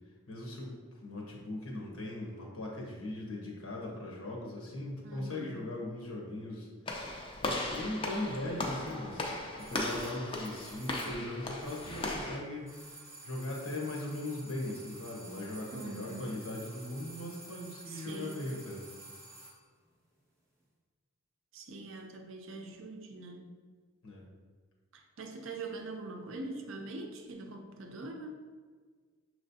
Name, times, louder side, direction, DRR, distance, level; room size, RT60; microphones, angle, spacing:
voice 1, 0.3-6.7 7.4-9.3 9.6-13.0 13.2-18.8 24.0-24.2, left 1 dB, 80° left, -2 dB, 1.2 m, -39 dB
voice 2, 5.0-5.6 15.7-16.3 17.9-18.5 21.5-23.5 24.9-28.3, right 2 dB, 60° right, 4 dB, 0.5 m, -43 dB
Walk footsteps / Slam, 6.9-12.4, left 2 dB, 25° left, 0.4 m, -37 dB
sound 1, 9.6-12.3 12.6-19.6 19.9-20.0, right 2 dB, 10° right, 0.7 m, -51 dB
6.1 x 3.1 x 2.7 m, 1.5 s
head